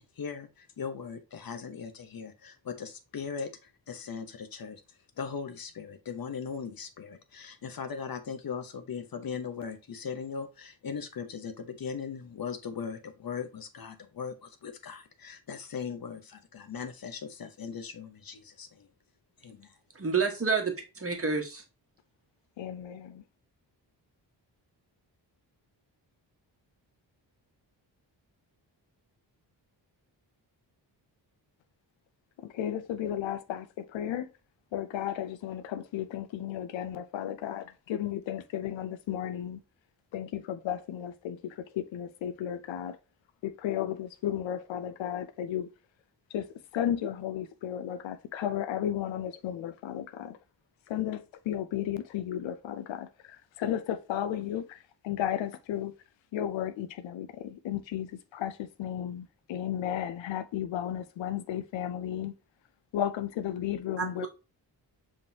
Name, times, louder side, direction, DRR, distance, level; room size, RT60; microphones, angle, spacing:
voice 1, 0.1-18.9 19.4-19.8, left 6 dB, 50° left, 0.9 m, -39 dB
voice 2, 19.9-21.6 64.0-64.3, right 5 dB, 30° right, 1.4 m, -29 dB
voice 3, 22.6-23.2 32.4-34.3 34.7-39.6 40.1-43.0 43.4-45.7 46.3-46.5 46.7-50.4 50.9-55.9 56.3-62.3 62.9-64.3, left 10 dB, 85° left, 0.6 m, -34 dB
5.2 x 3.7 x 2.7 m
cardioid pair, 55°, 45 cm